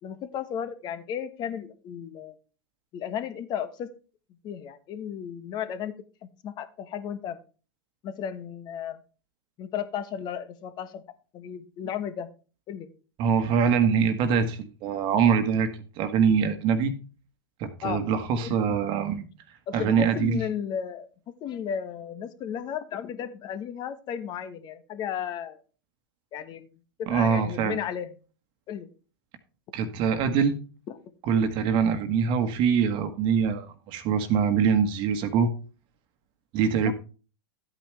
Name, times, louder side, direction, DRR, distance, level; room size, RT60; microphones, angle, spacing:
voice 1, 0.0-2.4 2.9-3.9 4.4-5.9 6.2-7.4 8.0-9.0 9.6-11.0 11.3-12.3 12.7-12.9 17.8-18.0 18.4-18.8 19.7-25.6 26.3-26.7 27.0-28.1 28.7-28.9 30.9-31.0 36.8-36.9, left 8 dB, 35° left, 11 dB, 1.3 m, -34 dB
voice 2, 13.2-15.7 16.0-16.9 17.6-19.2 19.7-20.4 27.1-27.8 29.7-30.6 31.2-35.5 36.5-36.9, right 6 dB, 40° right, 7 dB, 1.4 m, -24 dB
12.5 x 8.9 x 3.3 m, 0.35 s
hypercardioid pair, 110°, 13 cm